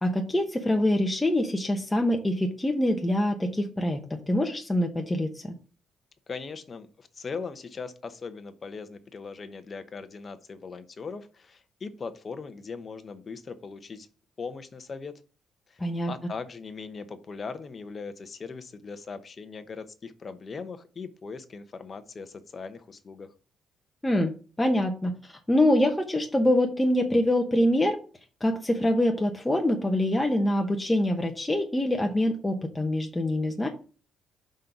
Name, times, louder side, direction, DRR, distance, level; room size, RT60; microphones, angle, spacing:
voice 1, 0.0-5.5 15.8-16.1 24.0-24.3 24.6-28.0 28.4-33.7, left 1 dB, 15° left, 3 dB, 0.9 m, -25 dB
voice 2, 6.3-14.1 14.4-15.1 15.7-23.3, left 4 dB, 40° left, 9 dB, 0.8 m, -39 dB
5.2 x 3.9 x 5.9 m, 0.37 s
cardioid pair, 90°, 0 cm